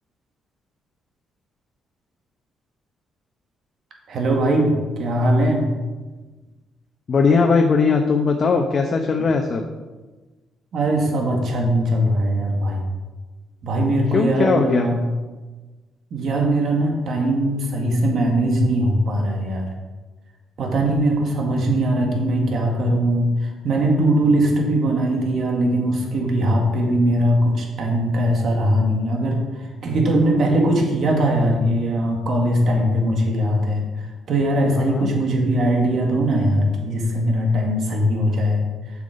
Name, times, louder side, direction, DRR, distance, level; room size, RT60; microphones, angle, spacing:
voice 1, 4.1-5.7 10.7-12.8 13.6-15.0 16.1-19.7 20.6-29.4 29.8-33.8 34.3-38.7, right 1 dB, 60° right, 1 dB, 1.9 m, -20 dB
voice 2, 7.1-9.6 14.1-14.9 34.8-35.1, left 4 dB, 45° left, 2 dB, 0.9 m, -19 dB
7.5 x 7.4 x 5.2 m, 1.2 s
cardioid pair, 90°, 0 cm